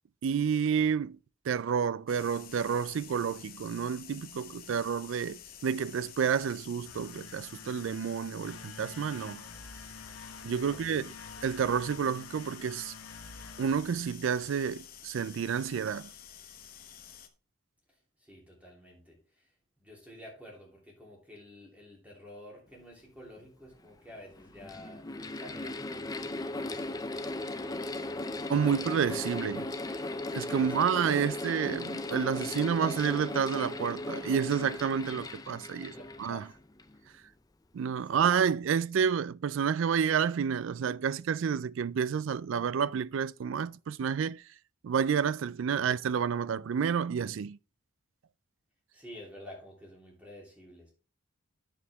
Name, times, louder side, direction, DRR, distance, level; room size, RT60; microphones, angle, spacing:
voice 1, 0.2-1.2 1.5-9.4 10.4-11.1 11.4-12.9 13.6-16.1 28.5-29.7 30.3-35.9 36.2-36.5 37.7-44.4 44.8-47.6, right 7 dB, 70° right, 0.3 m, -29 dB
sound 1, 2.1-17.3, left 9 dB, 45° left, 0.9 m, -50 dB
sound 2, 6.8-14.7, left 4 dB, 90° left, 1.2 m, -49 dB
voice 2, 10.7-11.1 18.2-19.5 19.8-28.8 30.5-30.9 35.8-36.5 38.1-38.4 45.8-45.9 48.9-50.9, equal, 5° right, 3.0 m, -51 dB
Mechanical fan, 23.4-23.5 24.3-37.0, left 2 dB, 15° left, 0.4 m, -37 dB
8.6 x 7.0 x 3.4 m
head